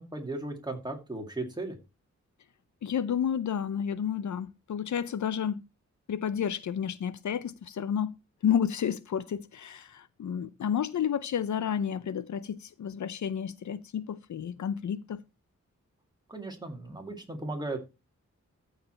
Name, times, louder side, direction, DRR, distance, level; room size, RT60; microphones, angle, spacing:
voice 1, 0.0-1.8 16.3-17.8, right 2 dB, 15° right, 2.2 m, -36 dB
voice 2, 2.8-5.6 6.1-8.1 8.4-15.2, left 8 dB, 75° left, 0.6 m, -31 dB
14.0 x 4.9 x 4.3 m
wide cardioid pair, 150°, 29 cm